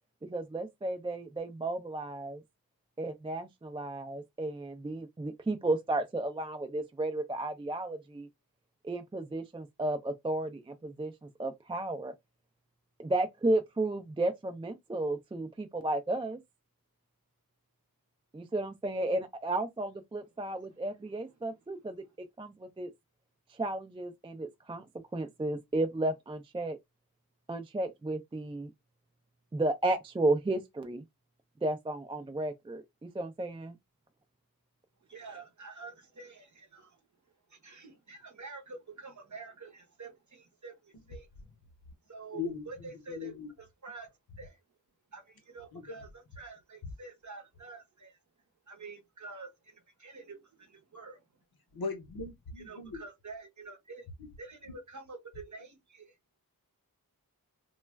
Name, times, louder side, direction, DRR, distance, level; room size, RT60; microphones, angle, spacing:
voice 1, 0.3-2.4 3.0-8.3 8.8-12.1 13.0-16.4 18.3-22.0 22.4-22.9 23.5-24.9 25.1-26.8 27.5-28.7 29.5-31.0 31.6-33.8, right 2 dB, 15° right, 0.3 m, -33 dB
voice 2, 35.1-37.0 37.5-41.3 42.1-44.6 45.1-48.2 48.7-51.2 52.6-54.1 54.4-56.2, right 3 dB, 50° right, 0.7 m, -48 dB
voice 3, 42.3-42.6 43.1-43.5 45.7-45.8 51.7-53.0, left 5 dB, 75° left, 0.8 m, -38 dB
2.2 x 2.1 x 3.3 m
wide cardioid pair, 65°, 37 cm